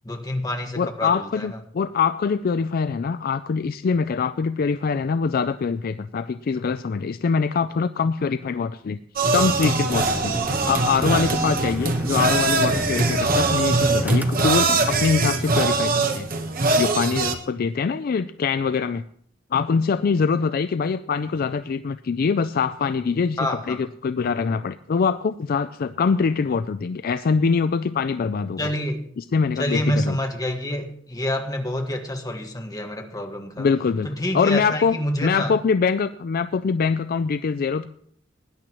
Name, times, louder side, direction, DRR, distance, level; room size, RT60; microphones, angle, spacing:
voice 1, 0.0-1.5 23.4-23.8 28.6-29.0 29.6-33.7 34.0-35.5, left 1 dB, 20° left, 3 dB, 1.5 m, -27 dB
voice 2, 0.8-9.0 9.3-10.3 10.6-16.3 16.8-19.0 19.5-28.6 29.2-30.2 33.6-34.1 34.3-35.0 35.2-37.9, left 5 dB, 50° left, 12 dB, 0.4 m, -23 dB
sound 1, 9.2-17.3, right 3 dB, 50° right, 1.2 m, -22 dB
sound 2, 9.9-14.9, equal, 10° right, 0.8 m, -33 dB
19.5 x 10.5 x 3.0 m, 0.63 s
head